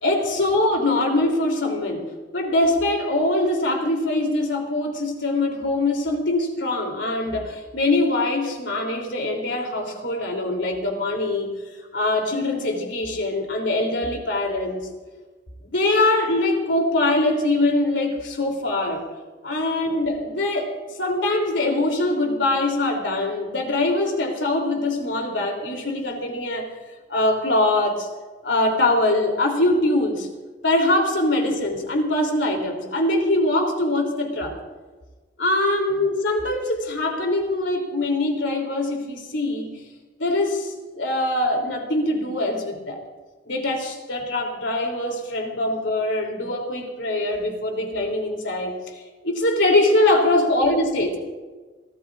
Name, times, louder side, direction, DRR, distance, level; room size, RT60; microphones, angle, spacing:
voice 1, 0.0-11.6 11.9-14.8 15.6-19.0 19.4-20.7 21.0-26.7 27.1-28.1 28.4-30.3 30.6-34.6 35.4-39.8 40.2-43.0 43.5-48.9 49.2-51.2, left 2 dB, 90° left, 2 dB, 3.1 m, -23 dB
29.5 x 13.0 x 2.5 m, 1.3 s
head